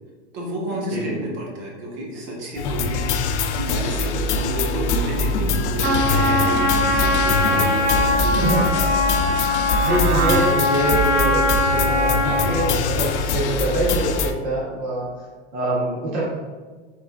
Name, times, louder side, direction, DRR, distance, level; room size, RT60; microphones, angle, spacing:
voice 1, 0.3-8.4 9.1-9.4, equal, 40° right, -3 dB, 1.3 m, -31 dB
sound 1, 2.6-14.3, left 3 dB, 65° left, 0.5 m, -23 dB
Trumpet, 5.8-12.7, left 1 dB, 75° right, 1.2 m, -21 dB
voice 2, 9.8-15.1 15.5-16.2, right 1 dB, 15° right, -6 dB, 0.4 m, -24 dB
4.8 x 3.8 x 2.4 m, 1.4 s
supercardioid pair, 160°, 37 cm